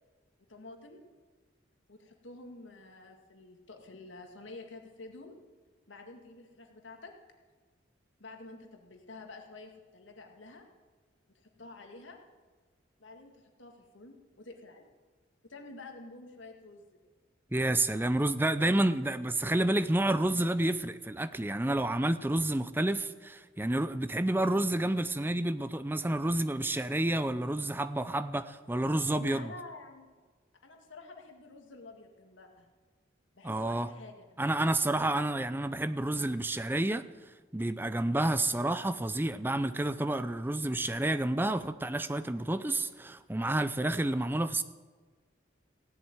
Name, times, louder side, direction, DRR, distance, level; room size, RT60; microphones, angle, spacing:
voice 1, 0.5-1.0 1.9-5.4 5.9-7.1 8.2-10.6 11.4-12.2 13.0-14.9 15.5-16.8 29.2-30.1 30.6-32.7 33.3-34.4, left 2 dB, 80° left, 2.0 m, -49 dB
voice 2, 17.5-29.5 33.4-33.9 34.4-37.0 37.5-44.6, right 1 dB, 10° right, 0.5 m, -29 dB
16.0 x 7.8 x 9.0 m
head